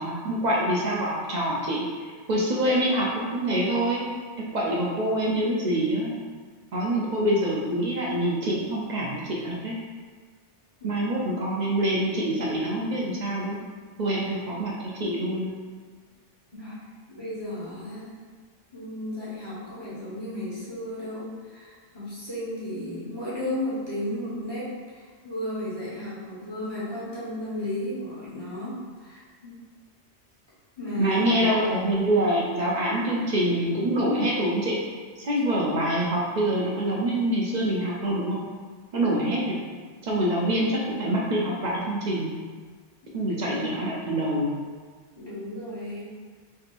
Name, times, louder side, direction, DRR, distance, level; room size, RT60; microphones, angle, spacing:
voice 1, 0.0-4.0 4.4-6.2 6.7-9.8 10.8-13.6 14.0-14.7 15.0-15.5 31.0-34.8 35.2-38.4 38.9-39.6 40.0-42.3 43.1-44.5, right 1 dB, 55° right, -4 dB, 0.5 m, -25 dB
voice 2, 17.2-18.2 18.7-29.5 30.8-31.6 43.0-43.8 45.1-46.0, left 1 dB, 20° left, -10 dB, 1.2 m, -34 dB
3.4 x 3.0 x 2.5 m, 1.5 s
omnidirectional pair, 1.2 m